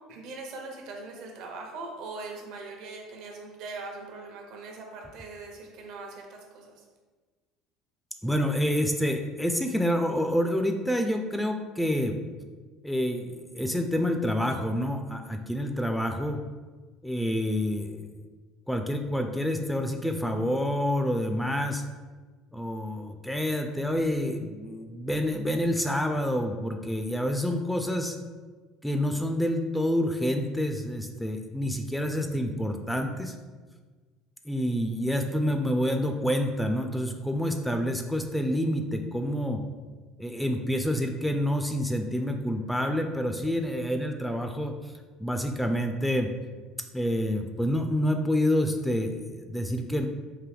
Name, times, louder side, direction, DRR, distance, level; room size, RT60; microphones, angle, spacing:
voice 1, 0.1-6.8, right 3 dB, 70° right, 1 dB, 0.8 m, -41 dB
voice 2, 8.2-12.1 12.8-16.4 17.0-18.0 18.7-21.8 22.5-28.2 28.8-33.3 34.5-39.6 40.2-44.9 45.2-46.3 46.9-50.1, equal, 5° left, 5 dB, 0.3 m, -28 dB
3.8 x 2.6 x 3.3 m, 1.4 s
supercardioid pair, 90°, 0 cm